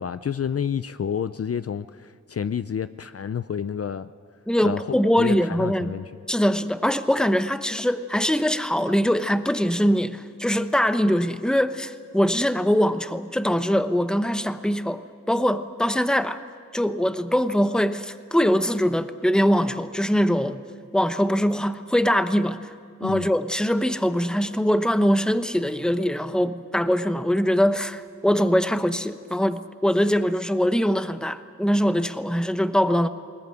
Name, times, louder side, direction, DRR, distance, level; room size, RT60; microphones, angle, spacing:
voice 1, 0.0-4.1 4.6-4.8 5.2-6.0 23.0-23.3, left 8 dB, 50° left, 13 dB, 0.6 m, -29 dB
voice 2, 4.5-6.0 6.3-16.4 16.7-20.6 20.9-22.6 23.0-33.1, equal, ahead, 11 dB, 1.0 m, -22 dB
20.5 x 20.0 x 9.2 m, 2.3 s
wide cardioid pair, 80°, 31 cm